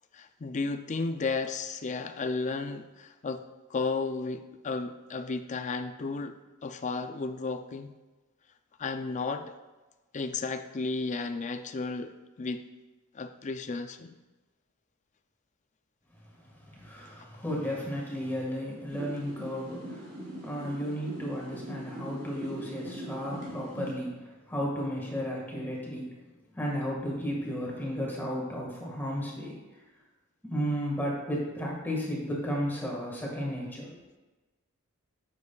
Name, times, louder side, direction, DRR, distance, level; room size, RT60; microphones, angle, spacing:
voice 1, 0.1-3.4 3.7-7.9 8.8-9.6 10.1-12.7 13.1-14.2, left 3 dB, 35° left, 9 dB, 0.4 m, -33 dB
voice 2, 16.7-20.1 20.4-24.1 24.5-26.1 26.6-29.6 30.4-33.9, equal, 10° left, -3 dB, 1.7 m, -33 dB
sound 1, 18.9-23.9, right 1 dB, 50° right, 2.0 m, -41 dB
9.4 x 7.5 x 2.3 m, 1.2 s
head